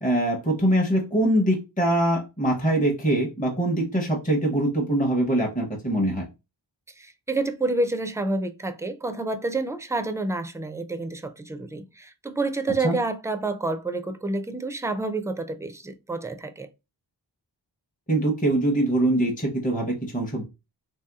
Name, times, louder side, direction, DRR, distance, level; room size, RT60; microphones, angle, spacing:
voice 1, 0.0-6.3 12.8-13.0 18.1-20.4, right 1 dB, 20° left, 0.7 m, -23 dB
voice 2, 7.0-16.7, right 2 dB, 10° right, 0.3 m, -29 dB
3.2 x 2.7 x 2.3 m
wide cardioid pair, 50°, 43 cm